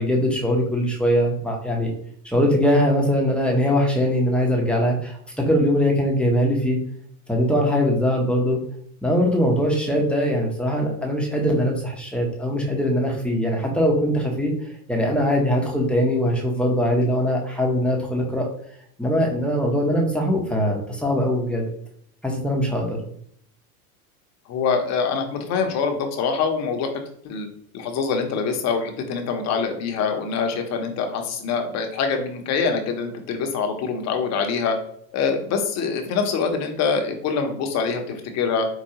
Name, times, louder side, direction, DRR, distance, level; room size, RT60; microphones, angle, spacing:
voice 1, 0.0-1.9 2.2-6.8 7.3-8.6 9.0-14.5 14.9-18.5 19.0-21.7 22.2-23.0, equal, ahead, -1 dB, 0.6 m, -21 dB
voice 2, 24.5-26.9 27.2-27.5 27.7-34.8 35.1-38.7, left 5 dB, 35° left, 4 dB, 0.7 m, -24 dB
4.5 x 2.3 x 2.8 m, 0.66 s
hypercardioid pair, 110°, 45 cm